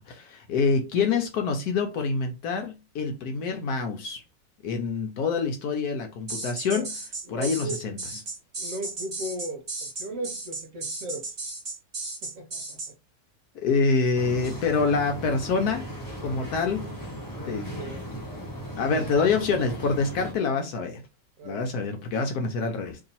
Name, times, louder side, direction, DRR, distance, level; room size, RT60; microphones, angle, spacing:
voice 1, 0.1-4.2 4.6-6.9 7.3-8.0 13.5-15.9 16.2-16.9 17.4-17.7 18.8-21.0 21.4-23.0, left 4 dB, 70° left, 1.0 m, -26 dB
sound 1, 6.3-12.9, right 3 dB, 30° right, 0.8 m, -35 dB
voice 2, 7.3-7.8 8.6-11.3 12.2-12.8 17.3-18.0 18.8-19.1 21.4-21.6, right 1 dB, 55° right, 1.2 m, -37 dB
sound 2, 14.1-20.3, equal, 15° left, 0.9 m, -37 dB
3.0 x 2.8 x 4.0 m
omnidirectional pair, 1.9 m